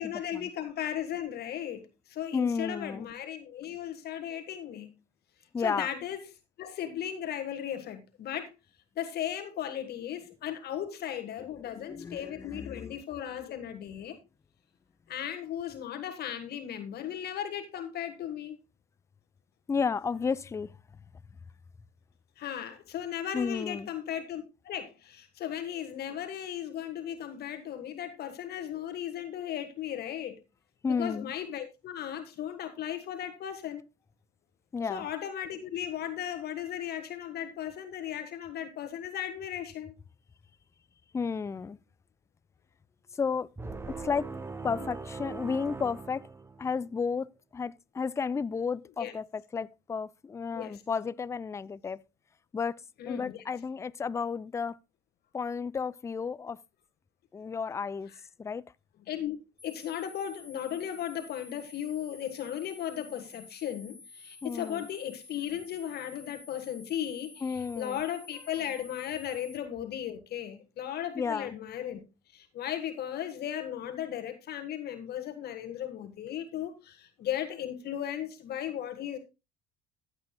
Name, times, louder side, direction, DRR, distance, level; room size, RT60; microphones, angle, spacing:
voice 1, 0.0-4.9 5.6-6.2 6.6-8.5 8.9-14.2 15.1-18.6 22.4-30.4 30.9-33.8 34.9-39.9 49.0-49.1 50.5-50.8 53.0-53.4 59.1-59.4 59.6-72.0 72.3-79.2, left 10 dB, 50° left, 1.4 m, -36 dB
voice 2, 2.3-3.1 5.5-5.9 11.7-13.0 19.7-20.7 23.3-23.9 30.8-31.3 34.7-35.1 41.1-41.8 43.2-43.5 44.0-44.3 44.6-46.3 46.6-52.0 52.5-52.8 53.1-54.8 55.3-56.6 57.3-58.1 58.4-58.6 64.4-64.9 67.4-68.0 71.2-71.5, left 5 dB, 15° left, 0.4 m, -32 dB
sound 1, 43.6-46.9, right 4 dB, 10° right, 0.9 m, -40 dB
sound 2, 59.6-69.6, left 3 dB, 30° right, 6.1 m, -52 dB
15.0 x 8.2 x 2.2 m
hypercardioid pair, 75°, 21 cm